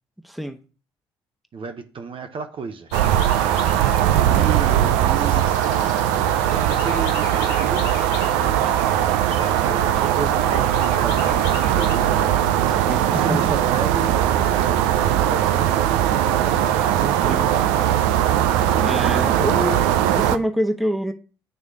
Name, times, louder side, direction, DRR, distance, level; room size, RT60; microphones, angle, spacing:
voice 1, 0.2-0.6 12.9-13.5 17.2-17.5 18.8-19.9 20.1-21.1, equal, ahead, 1.0 m, -26 dB
voice 2, 1.5-3.0 4.2-5.5 6.5-7.8 9.3-12.1 12.6-16.7 17.0-19.4 19.7-19.8, right 5 dB, 50° right, 0.8 m, -33 dB
sound 1, 2.9-12.0, left 8 dB, 80° left, 0.7 m, -39 dB
sound 2, 2.9-20.4, right 11 dB, 80° right, 0.4 m, -20 dB
9.0 x 3.2 x 3.7 m
hypercardioid pair, 45°, 12 cm